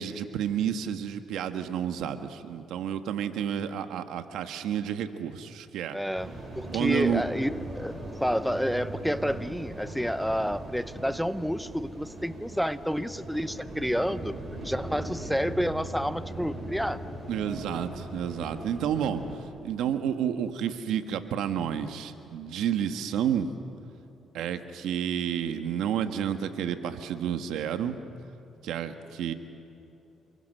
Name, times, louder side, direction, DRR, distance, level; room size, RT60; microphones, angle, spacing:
voice 1, 0.0-6.0 6.7-7.2 17.3-23.5 24.3-28.0 28.6-29.3, right 9 dB, 85° right, 8 dB, 1.4 m, -30 dB
voice 2, 5.9-14.4 14.6-17.0, equal, ahead, 14 dB, 0.7 m, -29 dB
sound 1, 6.2-19.4, right 1 dB, 30° right, 7.7 m, -39 dB
28.5 x 23.0 x 6.7 m, 2.9 s
cardioid pair, 90°, 0 cm